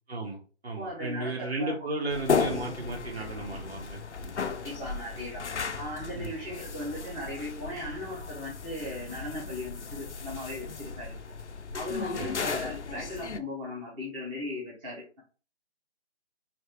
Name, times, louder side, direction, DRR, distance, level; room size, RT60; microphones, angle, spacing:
voice 1, 0.1-4.5 6.1-6.3 12.2-12.4, right 2 dB, 65° right, -1 dB, 2.1 m, -35 dB
voice 2, 0.8-1.7 4.6-5.5 5.8-11.1 11.7-15.2, left 1 dB, 10° right, -5 dB, 0.8 m, -38 dB
sound 1, 2.1-13.4, left 5 dB, 80° left, 0.7 m, -35 dB
5.0 x 2.5 x 3.4 m, 0.36 s
figure-of-eight pair, 150°, 34 cm